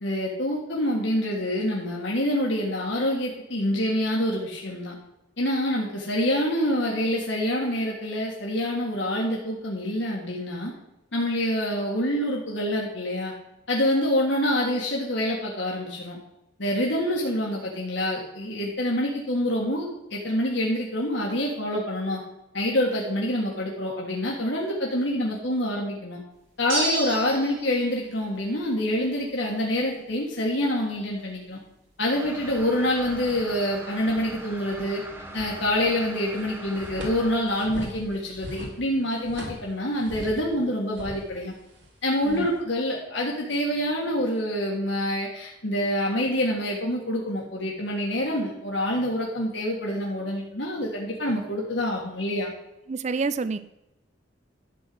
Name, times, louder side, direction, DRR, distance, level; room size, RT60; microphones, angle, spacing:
voice 1, 0.0-5.0 5.4-10.7 11.1-13.3 13.7-16.2 16.6-22.2 22.5-26.2 26.6-31.6 32.0-35.0 35.3-41.5 42.0-52.5, left 1 dB, 65° left, -3 dB, 1.7 m, -26 dB
sound 1, 26.7-27.7, right 2 dB, 80° right, 3.8 m, -28 dB
sound 2, 32.1-37.4, right 1 dB, 10° right, 1.0 m, -41 dB
sound 3, 35.3-36.1 36.3-40.6 40.9-42.6, equal, 60° right, 2.4 m, -41 dB
voice 2, 52.9-53.6, right 4 dB, 35° right, 13 dB, 0.4 m, -28 dB
11.5 x 4.6 x 7.8 m, 0.90 s
head